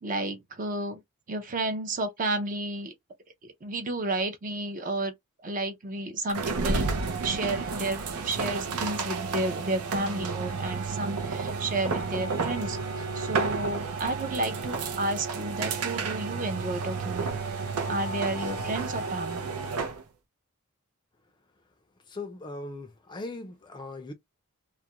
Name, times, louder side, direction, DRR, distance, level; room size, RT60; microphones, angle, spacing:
voice 1, 0.0-1.0 1.3-2.9 3.4-5.1 5.4-6.9 7.2-12.8 13.1-17.3 17.9-19.5, right 2 dB, 35° right, 0.5 m, -31 dB
sound 1, 6.3-20.0, right 4 dB, 85° right, 0.5 m, -31 dB
voice 2, 22.1-24.1, left 2 dB, 20° left, 0.4 m, -39 dB
2.4 x 2.1 x 2.8 m
head